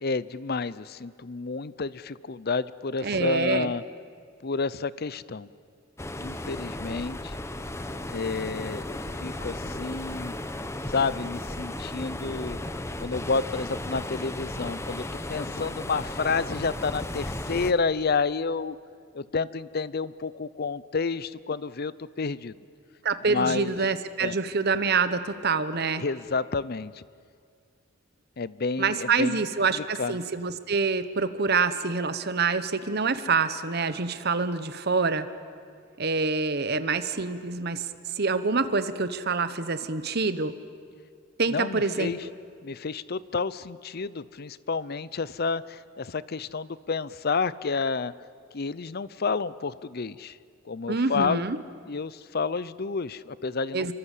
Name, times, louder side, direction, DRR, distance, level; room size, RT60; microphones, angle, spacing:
voice 1, 0.0-3.8 4.4-5.5 6.2-7.4 8.1-10.3 10.9-18.8 19.1-22.6 23.3-23.7 24.2-24.4 26.0-27.0 28.4-29.5 29.7-30.2 41.5-42.3 42.6-48.1 48.5-50.4 50.7-51.5 51.9-53.9, left 4 dB, 50° left, 18 dB, 0.6 m, -30 dB
voice 2, 3.0-3.7 23.0-26.0 28.8-35.3 36.0-37.9 38.2-40.5 41.4-42.1 50.9-51.6 53.7-53.9, right 4 dB, 50° right, 12 dB, 1.2 m, -26 dB
sound 1, 6.0-17.7, left 1 dB, 15° left, 0.9 m, -35 dB
27.5 x 24.0 x 8.4 m, 2.2 s
head